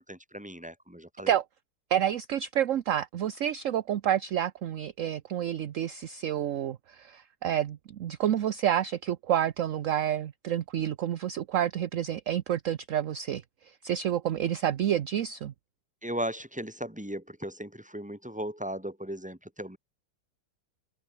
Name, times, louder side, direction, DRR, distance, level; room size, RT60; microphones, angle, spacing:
voice 1, 0.1-1.3 16.0-19.8, right 1 dB, 5° right, 3.7 m, -37 dB
voice 2, 1.9-15.5, right 10 dB, 55° right, 0.9 m, -29 dB
open air
omnidirectional pair, 2.0 m